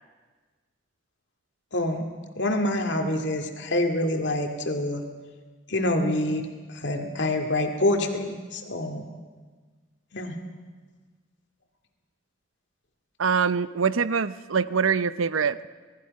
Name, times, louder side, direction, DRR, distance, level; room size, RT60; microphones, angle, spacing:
voice 1, 1.7-2.0 2.4-5.0 5.7-9.1 10.1-10.4, left 1 dB, 60° left, 3 dB, 2.3 m, -26 dB
voice 2, 13.2-15.7, right 6 dB, 85° right, 15 dB, 0.7 m, -24 dB
26.5 x 19.0 x 5.4 m, 1.4 s
head